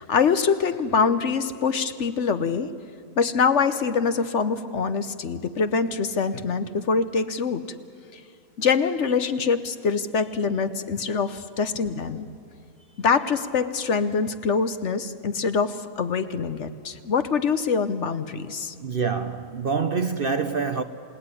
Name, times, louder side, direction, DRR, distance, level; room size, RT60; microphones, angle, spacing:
voice 1, 0.0-2.7 3.2-7.6 8.1-8.2 8.6-12.3 13.0-18.7, left 5 dB, 55° left, 1.2 m, -24 dB
voice 2, 18.8-20.8, right 5 dB, 50° right, 0.8 m, -26 dB
28.0 x 18.0 x 9.8 m
omnidirectional pair, 1.6 m